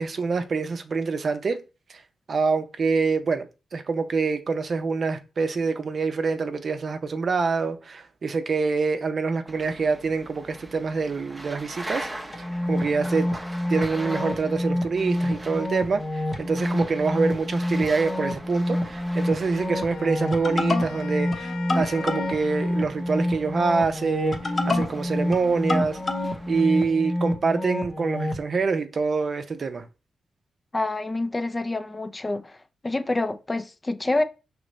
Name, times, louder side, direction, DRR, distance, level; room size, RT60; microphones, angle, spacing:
voice 1, 0.0-1.6 1.9-2.0 2.3-3.5 3.7-12.1 12.4-13.3 13.7-26.0 26.5-29.9, right 4 dB, 55° right, 0.6 m, -26 dB
sound 1, 9.5-26.6, right 1 dB, 15° right, 0.7 m, -42 dB
sound 2, 12.3-28.4, left 1 dB, 40° left, 0.9 m, -27 dB
Wind instrument woodwind instrument, 19.7-23.1, left 7 dB, 85° left, 0.4 m, -41 dB
voice 2, 30.7-32.6 32.8-34.2, left 2 dB, 25° left, 0.5 m, -27 dB
5.1 x 3.1 x 3.1 m
cardioid pair, 70°, 0 cm